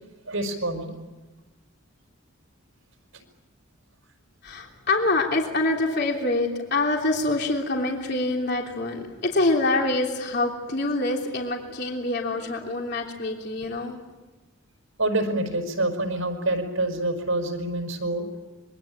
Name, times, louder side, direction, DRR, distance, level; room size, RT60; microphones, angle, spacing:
voice 1, 0.3-0.9 15.0-18.3, right 2 dB, 80° right, 5 dB, 5.4 m, -26 dB
voice 2, 4.4-14.0, left 2 dB, 55° left, 1 dB, 3.3 m, -25 dB
26.0 x 23.0 x 8.8 m, 1.2 s
head